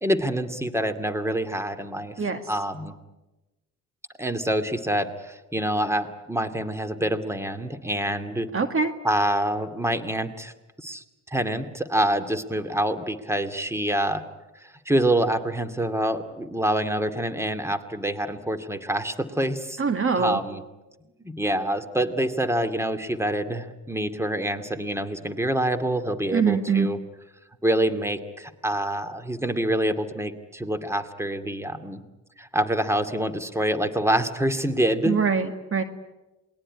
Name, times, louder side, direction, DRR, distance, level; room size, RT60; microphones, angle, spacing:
voice 1, 0.0-2.9 4.2-8.5 9.0-10.5 10.8-14.2 14.6-19.8 20.2-20.6 21.2-27.0 27.6-32.0 32.4-35.2, right 1 dB, 10° right, 10 dB, 2.4 m, -26 dB
voice 2, 8.5-8.9 19.8-20.4 26.3-26.9 35.1-35.8, right 5 dB, 40° right, 9 dB, 2.0 m, -23 dB
27.5 x 21.0 x 9.9 m, 1.1 s
supercardioid pair, 75°, 34 cm